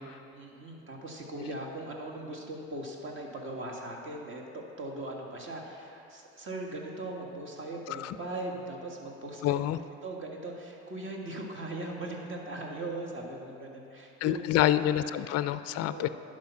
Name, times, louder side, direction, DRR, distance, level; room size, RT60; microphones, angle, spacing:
voice 1, 0.3-9.6 10.0-14.9 15.9-16.1, right 2 dB, 40° right, 0 dB, 1.7 m, -39 dB
voice 2, 9.4-9.8 14.2-16.1, left 12 dB, 50° left, 13 dB, 0.4 m, -28 dB
10.5 x 5.1 x 5.8 m, 2.6 s
supercardioid pair, 75°, 32 cm